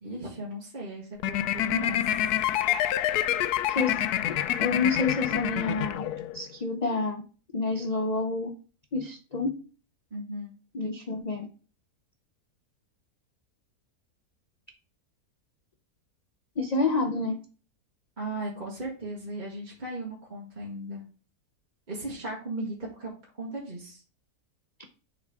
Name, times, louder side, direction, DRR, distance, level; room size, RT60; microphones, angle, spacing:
voice 1, 0.0-2.4 10.1-10.5 18.2-21.0 21.9-23.1 23.4-24.0, right 1 dB, 30° right, -4 dB, 1.7 m, -37 dB
sound 1, 1.2-6.4, left 12 dB, 85° left, 1.1 m, -27 dB
voice 2, 3.7-6.0 6.3-7.2 7.5-8.5 8.9-9.5 10.7-11.5 16.6-17.4, left 3 dB, 50° left, 4 dB, 0.5 m, -28 dB
8.8 x 3.9 x 3.5 m, 0.37 s
omnidirectional pair, 1.6 m